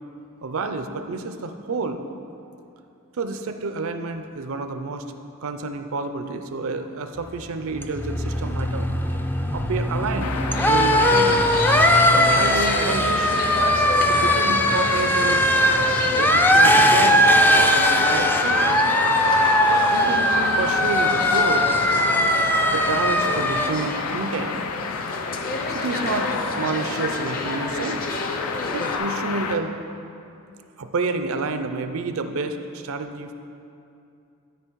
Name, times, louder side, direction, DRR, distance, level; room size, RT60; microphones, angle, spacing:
voice 1, 0.4-2.0 3.2-5.0 5.4-8.9 9.5-11.5 12.1-13.5 14.1-15.5 16.2-18.9 19.7-21.8 22.7-24.6 25.7-28.1 28.7-29.8 30.8-33.3, right 3 dB, 65° right, 8 dB, 0.5 m, -29 dB
sound 1, 7.3-23.7, equal, 10° left, 0.4 m, -20 dB
sound 2, 10.2-29.6, left 5 dB, 80° left, 0.5 m, -30 dB
sound 3, 10.5-29.0, left 2 dB, 40° left, 0.8 m, -31 dB
12.5 x 4.9 x 4.6 m, 2.6 s
head